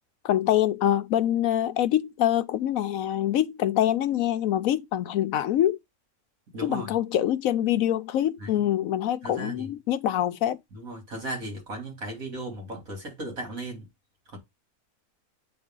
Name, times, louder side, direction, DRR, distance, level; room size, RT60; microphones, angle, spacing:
voice 1, 0.2-5.8 6.6-10.6, left 11 dB, 75° left, 1.0 m, -25 dB
voice 2, 6.5-6.9 8.4-8.7 9.2-9.7 10.7-13.9 14.3-14.4, right 1 dB, 70° right, 3.4 m, -36 dB
8.7 x 4.0 x 3.7 m
omnidirectional pair, 1.5 m